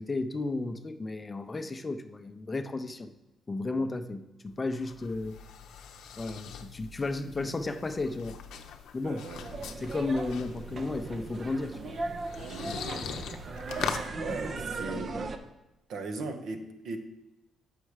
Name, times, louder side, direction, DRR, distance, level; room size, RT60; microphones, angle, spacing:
voice 1, 0.0-3.1 3.5-5.4 6.2-8.4 8.9-9.2 9.8-11.9 12.6-12.8, left 3 dB, 25° left, 9 dB, 0.6 m, -33 dB
sound 1, 4.5-14.1, left 7 dB, 80° left, 0.6 m, -42 dB
voice 2, 9.0-9.4 12.8-12.9 14.2-15.2 15.9-17.0, right 3 dB, 70° right, 6 dB, 1.0 m, -38 dB
sound 2, 9.3-15.4, right 3 dB, 45° right, 0.6 m, -37 dB
6.9 x 5.6 x 4.8 m, 0.99 s
cardioid pair, 90°, 0 cm